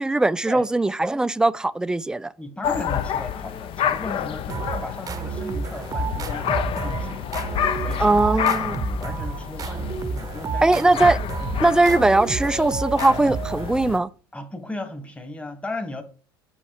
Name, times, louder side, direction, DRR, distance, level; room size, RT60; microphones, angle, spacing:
voice 1, 0.0-2.3 8.0-8.8 10.6-11.2 11.6-14.1, right 2 dB, 5° right, 0.3 m, -20 dB
voice 2, 2.4-7.2 7.8-10.8 11.4-11.7 14.3-16.0, left 2 dB, 10° left, 1.5 m, -36 dB
sound 1, 2.6-14.0, left 9 dB, 45° left, 0.7 m, -29 dB
sound 2, 4.5-14.0, right 5 dB, 30° right, 0.8 m, -31 dB
6.3 x 5.4 x 4.8 m
hypercardioid pair, 70°, 13 cm